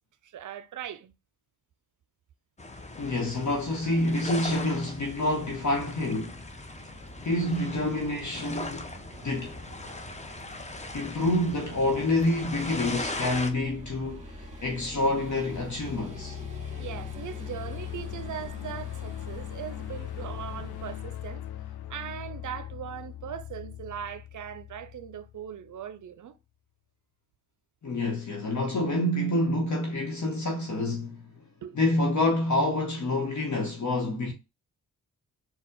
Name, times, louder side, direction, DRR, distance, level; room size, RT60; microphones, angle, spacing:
voice 1, 0.2-1.1 16.8-21.4 21.9-26.4 31.6-31.8, right 9 dB, 55° right, 0.6 m, -39 dB
sound 1, 2.6-13.5, left 2 dB, 20° left, 0.8 m, -39 dB
voice 2, 3.0-6.4 7.2-8.9 9.2-9.6 10.9-16.4 27.8-31.2 31.7-34.3, left 1 dB, 50° left, 1.1 m, -27 dB
sound 2, 5.3-21.0, right 1 dB, 20° right, 1.4 m, -47 dB
sound 3, 15.1-25.8, left 11 dB, 80° left, 0.5 m, -40 dB
4.2 x 2.3 x 3.7 m
supercardioid pair, 40°, 37 cm